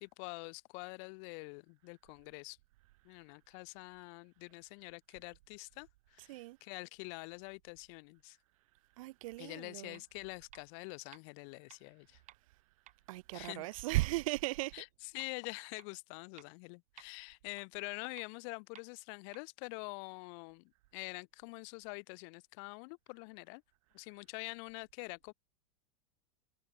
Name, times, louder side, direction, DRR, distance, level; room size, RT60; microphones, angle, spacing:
voice 1, 0.0-2.6 3.0-8.4 9.4-12.2 13.3-13.7 14.7-23.6 23.9-25.3, left 39 dB, 50° left, 1.0 m, -46 dB
voice 2, 6.2-6.6 9.0-10.0 13.1-14.9, right 19 dB, 60° right, 0.6 m, -36 dB
sound 1, 9.9-10.0 10.5-10.6 11.1-11.2 11.7-11.8 12.3-12.4 12.9-13.0 13.5-13.6 14.0-14.1 14.6-14.7 15.2-15.3 15.8-15.9 16.4-16.5 17.0-17.1 17.6-17.7 18.2-18.3 18.8-18.9 19.3-19.4, right 14 dB, 40° right, 5.5 m, -55 dB
hypercardioid pair, 100°, 20 cm